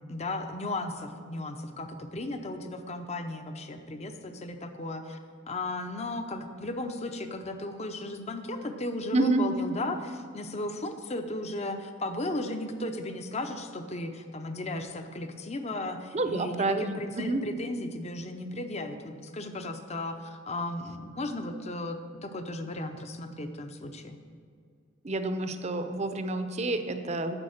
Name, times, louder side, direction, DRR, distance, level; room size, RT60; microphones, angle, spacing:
voice 1, 0.0-5.2 5.5-24.2, left 2 dB, 35° left, 7 dB, 0.7 m, -35 dB
voice 2, 9.1-9.4 16.1-17.4 25.0-27.3, right 2 dB, 35° right, 8 dB, 0.7 m, -28 dB
9.8 x 6.8 x 6.5 m, 2.2 s
head